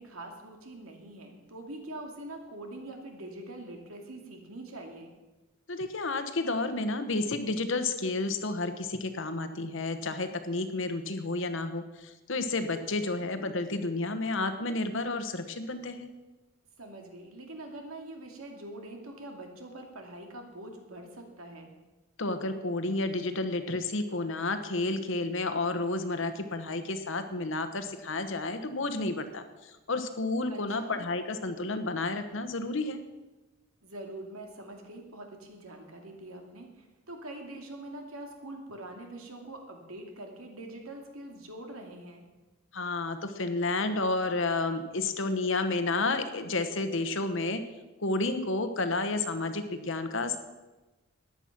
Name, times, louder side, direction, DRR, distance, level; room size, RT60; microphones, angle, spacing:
voice 1, 0.0-5.1 12.8-13.3 16.8-21.7 30.5-31.1 33.8-42.2, right 1 dB, 90° right, 3 dB, 2.5 m, -44 dB
voice 2, 5.7-16.1 22.2-33.0 42.7-47.6 48.0-50.4, left 2 dB, 60° left, 9 dB, 1.1 m, -31 dB
14.0 x 9.9 x 6.0 m, 1.1 s
head